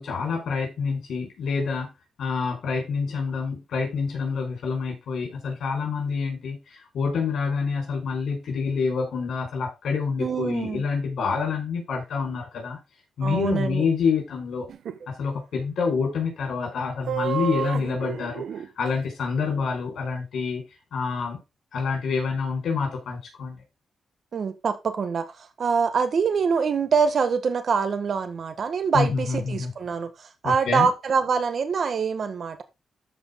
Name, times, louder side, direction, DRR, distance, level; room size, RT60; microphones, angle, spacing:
voice 1, 0.0-1.9 2.2-12.8 13.2-14.7 15.1-18.4 18.8-20.6 20.9-21.4 21.7-23.6 28.9-29.7 30.4-30.9, left 5 dB, 75° left, 5.0 m, -27 dB
voice 2, 10.2-10.8 13.2-13.8 24.3-32.6, right 5 dB, 55° right, 1.6 m, -25 dB
sound 1, 14.7-15.0 17.1-18.7, right 9 dB, 80° right, 1.0 m, -30 dB
13.5 x 5.2 x 3.8 m
cardioid pair, 120°, 0 cm